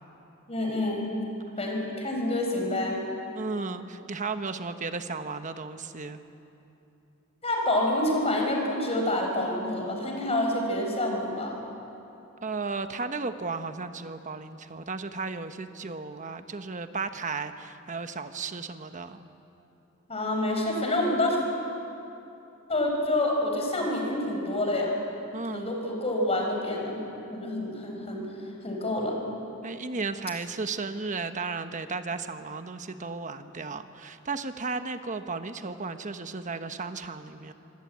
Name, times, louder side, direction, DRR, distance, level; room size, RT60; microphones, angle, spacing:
voice 1, 0.5-1.1 1.6-3.0 7.4-11.6 20.1-21.4 22.7-24.9 25.5-27.0 27.3-28.3 28.6-29.2, left 1 dB, 30° left, 1 dB, 5.1 m, -27 dB
voice 2, 3.3-6.2 12.4-19.2 25.3-25.7 29.6-37.5, right 4 dB, 35° right, 9 dB, 1.1 m, -34 dB
26.0 x 18.0 x 8.6 m, 2.9 s
head